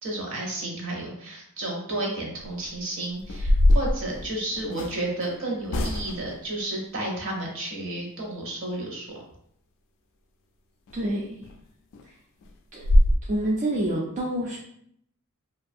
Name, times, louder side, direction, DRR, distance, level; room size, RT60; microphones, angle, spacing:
voice 1, 0.0-9.1, right 1 dB, 60° right, -1 dB, 0.8 m, -32 dB
sound 1, 2.4-2.7 3.2-5.0 5.7-6.3 10.9-11.0 11.4-11.5 11.9-12.0 12.4-12.5 12.8-13.2, left 1 dB, 60° left, 0.3 m, -22 dB
voice 2, 10.9-11.5 12.0-12.2 12.7-12.9 13.2-14.6, right 1 dB, 35° right, -5 dB, 0.4 m, -28 dB
2.6 x 2.3 x 2.6 m, 0.71 s
head